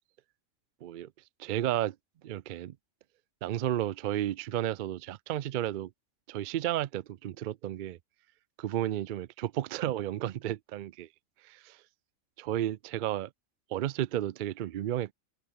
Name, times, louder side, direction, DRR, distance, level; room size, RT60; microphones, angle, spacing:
voice 1, 0.8-1.1 1.4-2.0 2.2-2.8 3.4-5.9 6.3-8.0 8.6-11.1 11.4-11.8 12.4-13.3 13.7-15.1, right 12 dB, 65° right, 0.5 m, -32 dB
omnidirectional pair, 1.3 m